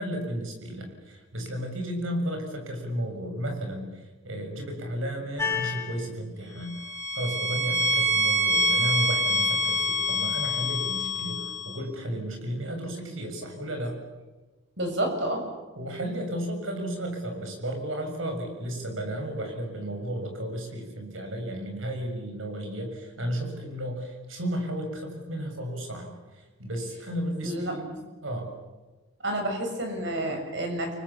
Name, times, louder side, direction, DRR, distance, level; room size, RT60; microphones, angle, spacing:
voice 1, 0.0-6.8 7.1-14.0 15.8-27.8 28.2-28.5, right 1 dB, 80° right, 4 dB, 6.9 m, -33 dB
sound 1, 5.4-5.9 6.7-11.8, left 1 dB, 15° left, 3.1 m, -26 dB
voice 2, 14.8-15.4 27.4-27.7 29.2-30.9, right 1 dB, 60° right, 3 dB, 7.5 m, -29 dB
30.0 x 24.0 x 7.3 m, 1.2 s
head